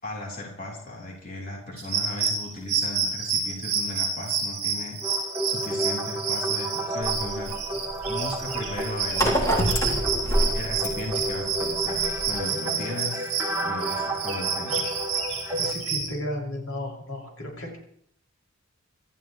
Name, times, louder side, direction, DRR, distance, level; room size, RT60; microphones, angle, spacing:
voice 1, 0.0-9.7 10.5-13.3 13.6-14.9, left 1 dB, 40° left, -2 dB, 4.2 m, -37 dB
sound 1, 1.8-16.1, right 5 dB, 30° right, 6.5 m, -29 dB
sound 2, 5.0-15.7, right 1 dB, 10° right, 3.3 m, -32 dB
sound 3, 7.0-12.4, equal, 15° left, 3.7 m, -27 dB
voice 2, 15.5-17.8, left 1 dB, 85° left, -1 dB, 6.4 m, -34 dB
26.5 x 14.5 x 3.3 m, 0.65 s
head